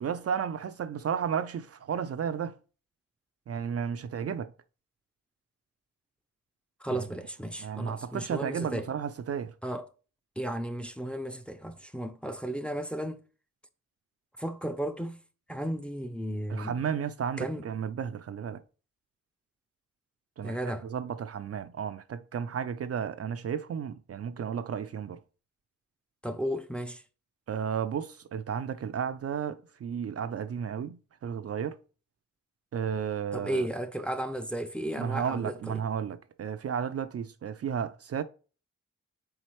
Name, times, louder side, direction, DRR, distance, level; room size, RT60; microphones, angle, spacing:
voice 1, 0.0-2.6 3.5-4.5 6.9-7.0 7.6-9.5 16.5-18.6 20.4-20.6 20.8-25.2 27.5-31.8 32.7-33.7 35.0-38.2, right 7 dB, 50° right, 0.4 m, -33 dB
voice 2, 6.8-8.9 9.6-9.9 10.4-13.2 14.4-15.2 15.5-16.8 17.4-17.7 20.4-20.9 26.2-27.0 33.3-35.8, right 1 dB, 5° left, 0.5 m, -34 dB
4.5 x 3.8 x 3.0 m
cardioid pair, 55°, 31 cm